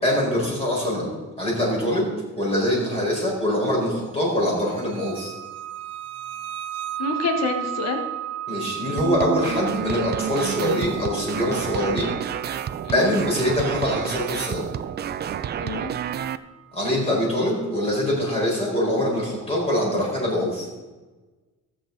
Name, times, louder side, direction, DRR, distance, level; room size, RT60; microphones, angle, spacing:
voice 1, 0.0-2.1 2.4-5.3 8.5-12.1 12.9-14.6 16.7-20.7, left 1 dB, 20° left, -4 dB, 4.6 m, -24 dB
sound 1, 4.7-17.2, right 12 dB, 60° right, 0.9 m, -36 dB
voice 2, 7.0-8.0 12.8-13.1 15.6-15.9, left 3 dB, 65° left, 5 dB, 1.5 m, -27 dB
sound 2, 9.0-16.4, right 9 dB, 35° right, 0.4 m, -30 dB
18.5 x 7.8 x 3.9 m, 1.2 s
cardioid pair, 170°, 29 cm